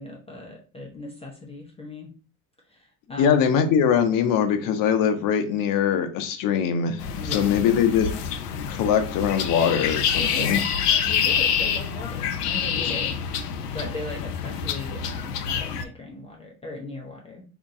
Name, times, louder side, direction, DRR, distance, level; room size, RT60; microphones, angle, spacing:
voice 1, 0.0-2.1 2.7-3.5 7.2-7.7 10.1-10.7 11.0-13.1 13.7-17.4, left 2 dB, 15° left, -1 dB, 0.7 m, -38 dB
voice 2, 3.2-8.1 8.7-10.6, left 7 dB, 45° left, 7 dB, 0.8 m, -22 dB
sound 1, 7.0-15.8, left 7 dB, 90° left, 0.6 m, -27 dB
2.9 x 2.6 x 3.6 m, 0.37 s
hypercardioid pair, 90°, 46 cm